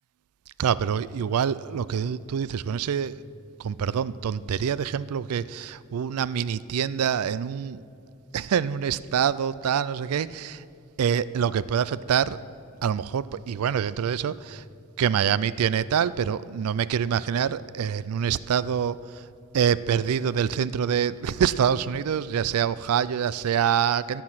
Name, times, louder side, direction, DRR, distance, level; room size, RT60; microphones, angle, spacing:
voice 1, 0.6-3.2 3.6-7.8 8.3-10.6 11.0-12.4 12.8-14.6 15.0-19.0 19.5-24.2, right 8 dB, 85° right, 0.4 m, -25 dB
14.0 x 11.5 x 5.7 m
head